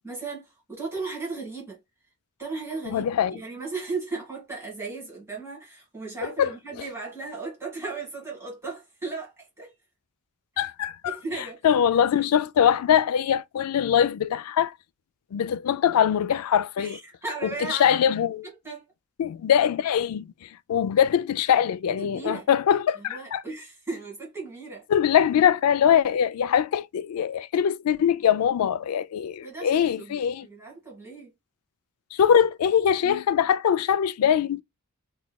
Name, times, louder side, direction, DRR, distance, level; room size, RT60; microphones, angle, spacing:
voice 1, 0.0-1.8 2.4-9.7 11.0-11.7 12.2-12.3 16.8-18.0 18.6-18.8 22.0-22.5 23.0-24.9 29.4-31.3, right 3 dB, 10° right, 1.9 m, -36 dB
voice 2, 2.9-3.4 6.2-6.5 10.6-11.2 11.6-14.7 15.3-17.0 17.7-18.4 19.2-23.4 24.9-30.5 32.1-34.6, left 8 dB, 80° left, 0.3 m, -22 dB
3.9 x 3.1 x 2.2 m
head